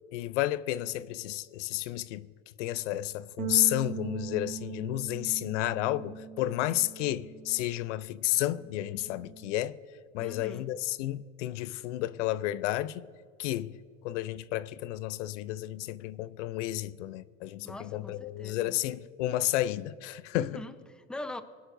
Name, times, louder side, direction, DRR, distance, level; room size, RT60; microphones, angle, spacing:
voice 1, 0.1-2.3 2.6-9.7 10.1-13.1 13.4-13.7 14.0-20.6, left 15 dB, 85° left, 0.5 m, -31 dB
sound 1, 3.4-7.9 8.2-9.6, right 10 dB, 85° right, 1.2 m, -41 dB
voice 2, 10.2-10.7 17.6-18.8 20.3-21.4, left 2 dB, ahead, 0.7 m, -42 dB
24.0 x 11.5 x 2.6 m
supercardioid pair, 115°, 35 cm